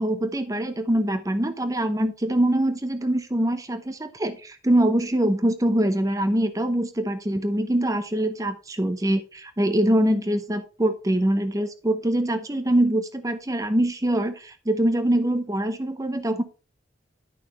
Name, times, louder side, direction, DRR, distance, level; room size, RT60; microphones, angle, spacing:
voice 1, 0.0-16.4, right 1 dB, 15° right, 0.7 m, -24 dB
11.0 x 5.8 x 3.1 m
head